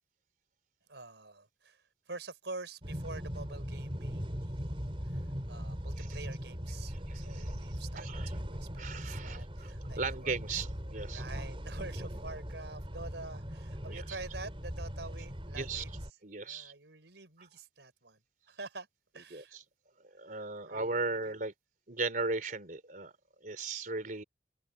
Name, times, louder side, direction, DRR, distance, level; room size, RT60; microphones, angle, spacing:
voice 1, 0.9-10.4 11.1-16.0 16.4-18.2 18.5-18.9 19.1-19.6 20.3-21.4, right 3 dB, 80° right, 4.5 m, -47 dB
sound 1, 2.8-16.1, equal, 30° right, 5.7 m, -40 dB
voice 2, 7.1-8.3 8.8-9.7 10.0-11.2 13.8-14.0 15.5-15.8 16.2-16.7 19.3-19.6 20.1-21.5 21.9-23.1 23.4-24.2, right 3 dB, 50° right, 3.4 m, -37 dB
head